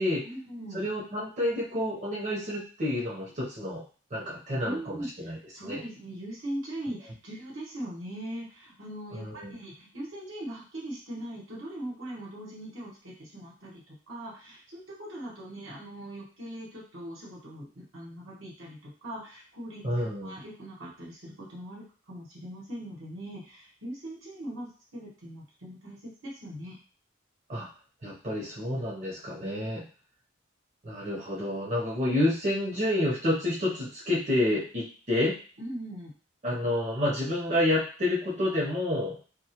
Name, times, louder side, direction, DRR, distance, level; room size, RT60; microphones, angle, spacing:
voice 1, 0.2-0.9 4.6-26.8 35.6-36.1, right 1 dB, 80° right, -4 dB, 1.0 m, -40 dB
voice 2, 0.7-3.8 4.1-5.8 9.1-9.5 19.8-20.4 27.5-27.7 28.0-29.8 30.8-35.4 36.4-39.2, left 1 dB, 35° right, -6 dB, 0.7 m, -29 dB
2.3 x 2.1 x 2.8 m, 0.38 s
head